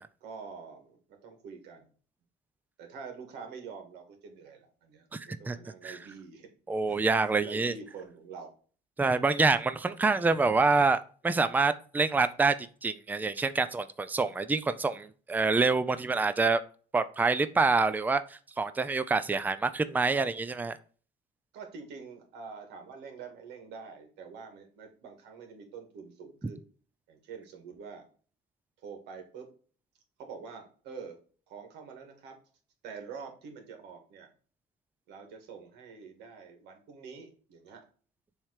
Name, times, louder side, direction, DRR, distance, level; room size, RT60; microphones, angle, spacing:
voice 1, 0.2-1.9 2.8-6.5 6.9-7.1 7.4-8.5 9.9-10.0 21.5-26.6 27.1-28.0 28.8-29.5 30.2-31.2 31.5-32.4 32.8-34.3 35.1-37.9, right 5 dB, 85° right, 4 dB, 1.9 m, -46 dB
voice 2, 5.1-5.6 5.8-6.0 6.7-7.7 9.0-11.0 11.2-12.5 12.8-16.6 16.9-20.8, right 4 dB, 10° right, 12 dB, 0.4 m, -26 dB
7.2 x 3.3 x 4.8 m, 0.41 s
cardioid pair, 110°, 17 cm